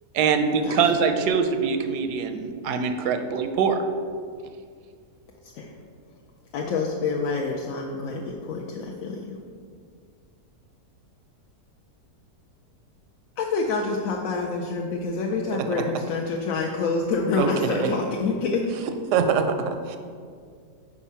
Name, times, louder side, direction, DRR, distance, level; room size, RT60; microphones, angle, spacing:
voice 1, 0.1-3.8, right 6 dB, 85° right, 7 dB, 1.2 m, -23 dB
voice 2, 6.5-9.4 13.4-18.7, left 4 dB, 65° left, -1 dB, 0.9 m, -27 dB
voice 3, 17.4-17.9 19.1-20.0, right 6 dB, 65° right, 7 dB, 0.8 m, -23 dB
5.4 x 4.8 x 5.6 m, 2.1 s
omnidirectional pair, 1.6 m